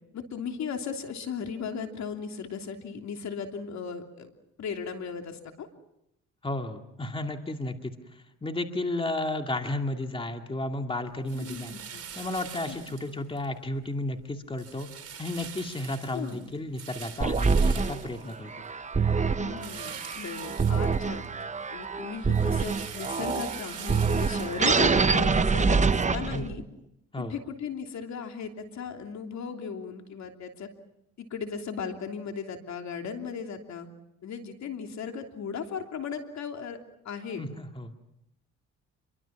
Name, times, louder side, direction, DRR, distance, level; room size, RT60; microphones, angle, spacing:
voice 1, 0.1-4.3 4.6-5.7 11.3-12.0 12.7-12.8 16.1-16.5 19.4-21.2 21.7-26.6 27.2-30.7 31.2-33.9 34.2-36.8 37.0-37.4, left 6 dB, 65° left, 4 dB, 3.2 m, -36 dB
voice 2, 6.4-11.8 12.2-14.9 15.2-18.5 26.3-26.4 27.1-27.3 37.4-37.9, left 2 dB, 15° left, 5 dB, 2.3 m, -33 dB
sound 1, 11.3-13.5 13.9-14.2 14.6-18.9 19.6-21.4 21.8-26.1, right 8 dB, 50° right, 4.0 m, -44 dB
sound 2, 17.2-26.6, right 4 dB, 25° right, 1.0 m, -26 dB
28.0 x 23.5 x 6.0 m, 0.83 s
cardioid pair, 90°, 30 cm